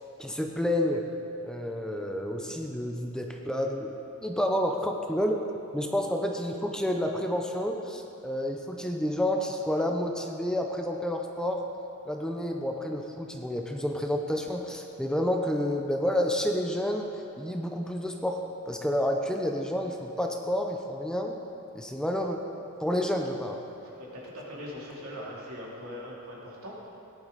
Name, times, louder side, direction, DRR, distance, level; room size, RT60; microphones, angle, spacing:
voice 1, 0.2-1.0 1.4-3.9 4.2-5.4 5.7-11.6 12.1-17.1 17.4-21.4 21.7-22.4 22.8-23.6, left 1 dB, 5° left, 2 dB, 0.6 m, -29 dB
voice 2, 23.8-26.7, equal, 85° right, -5 dB, 3.2 m, -41 dB
17.0 x 10.5 x 4.1 m, 2.7 s
head